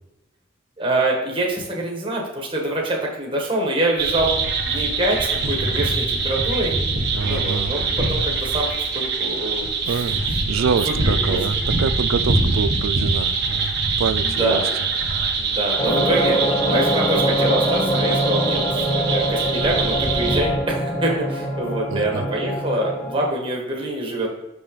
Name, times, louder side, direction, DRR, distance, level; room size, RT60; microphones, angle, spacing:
voice 1, 0.8-4.3 4.6-6.7 7.2-8.7 8.9-10.4 10.8-11.4 14.2-14.7 15.4-24.3, right 1 dB, 25° right, -1 dB, 1.4 m, -25 dB
sound 1, 4.0-20.4, right 4 dB, 55° right, 1.1 m, -24 dB
voice 2, 7.1-7.8 9.6-14.7 21.9-22.3, right 6 dB, 90° right, 13 dB, 0.4 m, -26 dB
sound 2, 15.8-23.3, equal, 25° left, 2.2 m, -23 dB
6.3 x 6.1 x 3.2 m, 0.96 s
head